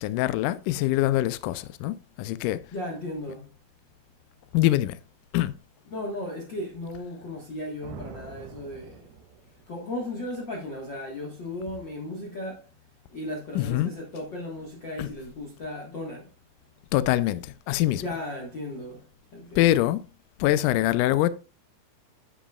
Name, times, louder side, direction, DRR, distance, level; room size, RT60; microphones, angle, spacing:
voice 1, 0.0-2.6 4.5-5.0 5.3-5.5 13.6-13.9 15.0-15.1 16.9-18.0 19.6-20.0 20.4-21.3, left 15 dB, 90° left, 1.8 m, -24 dB
voice 2, 2.7-3.5 5.9-9.1 9.7-12.7 13.1-16.3 17.9-19.6, left 1 dB, 50° left, 1.3 m, -36 dB
sound 1, 7.8-9.8, right 7 dB, 85° right, 2.8 m, -45 dB
10.0 x 7.5 x 2.3 m
omnidirectional pair, 4.4 m